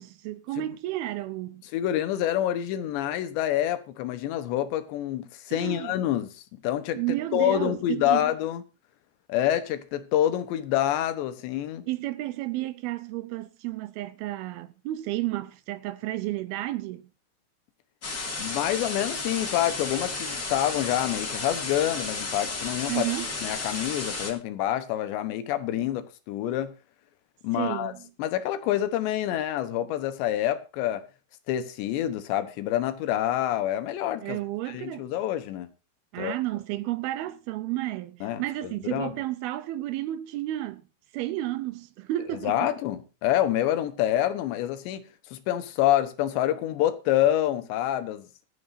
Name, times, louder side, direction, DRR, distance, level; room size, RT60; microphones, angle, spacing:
voice 1, 0.0-1.6 5.5-5.9 7.0-8.3 11.9-17.1 22.9-23.3 27.5-28.0 34.2-35.1 36.1-40.8 41.1-42.7, right 15 dB, 80° right, 2.4 m, -32 dB
voice 2, 1.7-7.0 7.3-8.6 9.3-11.9 18.4-23.1 23.4-26.7 27.4-27.9 28.2-31.0 31.5-34.4 34.7-35.7 36.2-36.4 38.2-39.1 42.4-48.3, left 12 dB, 85° left, 3.4 m, -27 dB
sound 1, 18.0-24.3, left 3 dB, 25° left, 2.3 m, -33 dB
25.5 x 8.6 x 2.7 m
omnidirectional pair, 4.9 m